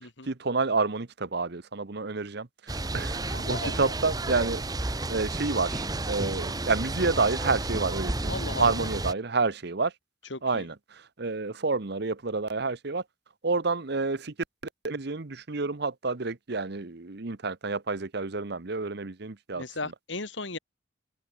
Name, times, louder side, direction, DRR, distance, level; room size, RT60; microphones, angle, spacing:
voice 1, 0.3-9.9 10.4-13.0 13.4-14.3 14.8-19.6, right 4 dB, 60° right, 1.0 m, -29 dB
sound 1, 2.7-9.1, right 2 dB, 20° right, 1.1 m, -31 dB
voice 2, 3.3-3.9 8.3-8.9 10.3-10.6 19.6-20.6, left 3 dB, 70° left, 3.3 m, -36 dB
open air
head